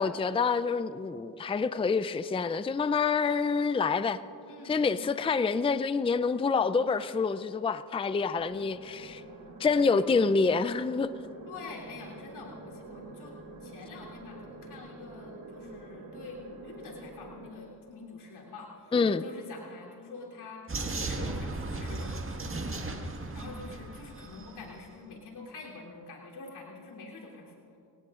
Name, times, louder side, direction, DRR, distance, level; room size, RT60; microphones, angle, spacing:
voice 1, 0.0-4.2 4.7-9.2 9.6-11.1 18.9-19.2, left 5 dB, 15° left, 0.4 m, -27 dB
voice 2, 4.4-5.1 11.5-13.3 13.6-20.6 21.0-22.5 23.3-27.8, left 3 dB, 90° left, 3.4 m, -46 dB
sound 1, 8.3-17.5, right 2 dB, 70° right, 3.0 m, -47 dB
Vehicle, 20.7-24.6, right 2 dB, 35° right, 1.7 m, -36 dB
29.5 x 18.0 x 2.5 m
cardioid pair, 65°, 38 cm